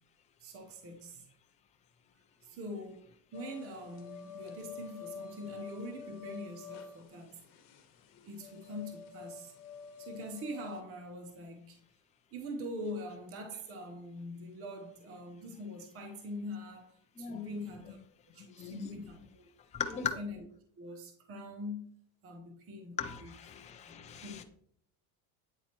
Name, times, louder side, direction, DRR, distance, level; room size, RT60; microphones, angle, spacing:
voice 1, 0.4-1.2 2.4-7.4 8.2-9.5 10.0-11.8 12.3-18.0 18.3-19.5 19.9-20.4 20.8-21.9 22.2-23.3 23.9-24.4, left 1 dB, 30° right, 3 dB, 0.8 m, -43 dB
sound 1, 3.3-10.8, left 6 dB, 55° left, 1.2 m, -48 dB
voice 2, 17.2-17.5 18.6-18.8 19.7-20.2 23.0-24.4, left 7 dB, 15° left, 5 dB, 0.3 m, -38 dB
8.9 x 4.1 x 2.9 m, 0.64 s
cardioid pair, 145°, 49 cm